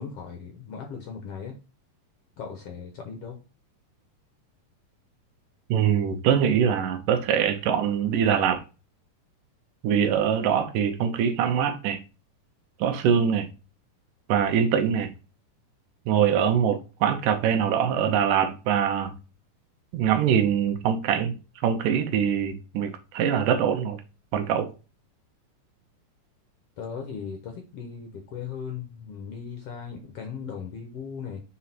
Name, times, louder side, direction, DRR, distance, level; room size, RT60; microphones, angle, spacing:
voice 1, 0.0-1.6 2.4-3.4 26.8-31.4, left 6 dB, 65° left, 1.6 m, -37 dB
voice 2, 5.7-8.6 9.8-12.0 12.8-13.5 14.3-15.1 16.1-19.2 19.9-21.4 21.6-24.0 24.3-24.7, right 8 dB, 80° right, 2.5 m, -23 dB
6.4 x 4.1 x 4.3 m
omnidirectional pair, 3.8 m